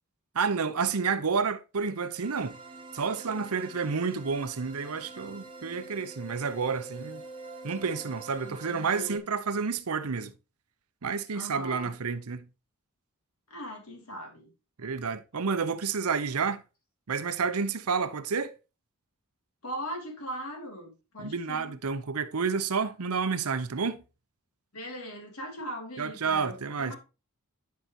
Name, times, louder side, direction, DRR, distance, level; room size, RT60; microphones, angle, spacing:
voice 1, 0.3-2.6 2.9-7.2 7.6-10.3 11.0-12.5 14.8-16.6 17.1-18.5 21.2-24.0 26.0-26.9, right 5 dB, 90° right, 0.8 m, -30 dB
sound 1, 2.2-9.2, right 3 dB, 25° right, 1.1 m, -46 dB
voice 2, 8.4-9.2 11.3-12.0 13.5-14.5 19.6-21.8 24.7-27.0, equal, 80° left, 2.8 m, -40 dB
10.0 x 5.7 x 2.9 m
head